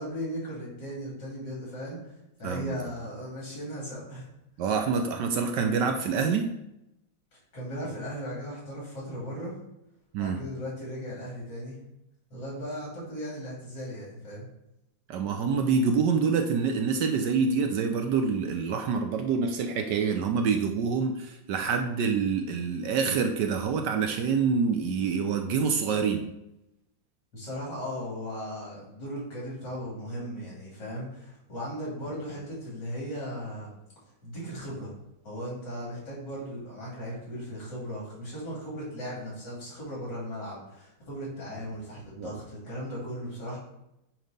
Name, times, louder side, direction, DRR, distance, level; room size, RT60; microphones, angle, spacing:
voice 1, 0.0-2.1 2.4-4.3 7.3-9.6 10.2-11.8 12.3-14.4 27.3-33.7 34.2-34.9 35.2-43.6, equal, 60° left, -5 dB, 3.8 m, -37 dB
voice 2, 2.4-2.8 4.6-6.6 10.1-10.4 15.1-26.3 42.2-42.3, right 5 dB, 70° right, 6 dB, 1.1 m, -26 dB
8.9 x 3.2 x 5.2 m, 0.86 s
omnidirectional pair, 2.1 m